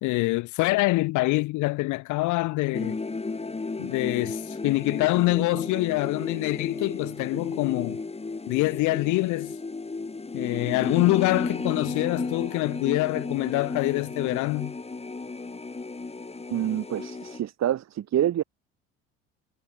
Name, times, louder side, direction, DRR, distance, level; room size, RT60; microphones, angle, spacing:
voice 1, 0.0-3.0 3.8-8.0 8.5-9.5 10.3-14.7, left 21 dB, 70° left, 1.2 m, -25 dB
sound 1, 2.7-17.4, left 3 dB, 20° left, 4.1 m, -34 dB
voice 2, 16.5-18.4, right 11 dB, 55° right, 7.0 m, -27 dB
supercardioid pair, 70°, 31 cm